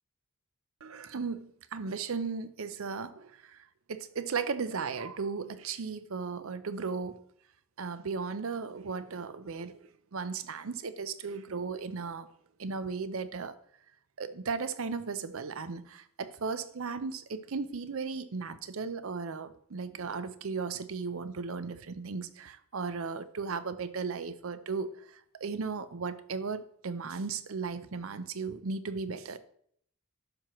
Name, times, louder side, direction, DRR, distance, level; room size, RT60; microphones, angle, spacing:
voice 1, 0.8-3.6 3.9-7.2 7.8-9.8 10.1-12.3 12.6-13.5 14.2-24.9 25.4-29.4, right 5 dB, 65° right, 13 dB, 0.6 m, -36 dB
11.5 x 5.9 x 3.1 m, 0.65 s
head